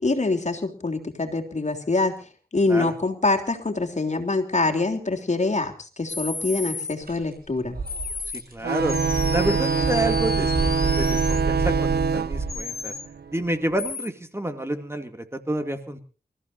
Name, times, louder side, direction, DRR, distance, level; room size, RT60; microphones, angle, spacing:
voice 1, 0.0-7.8, left 3 dB, 45° left, 4 dB, 3.3 m, -25 dB
sound 1, 6.1-6.9 7.9-8.4 8.9-11.4 12.5-13.1 13.8-14.1, left 5 dB, 80° left, 1.6 m, -33 dB
sound 2, 7.0-7.1 7.5-12.5, right 4 dB, 65° right, 7.4 m, -29 dB
voice 2, 8.5-9.0 9.3-12.9 13.3-16.0, right 1 dB, 15° right, 7 dB, 2.5 m, -29 dB
sound 3, 8.6-13.8, right 5 dB, 85° right, 0.8 m, -25 dB
28.0 x 15.0 x 2.7 m, 0.36 s
wide cardioid pair, 60°, 16 cm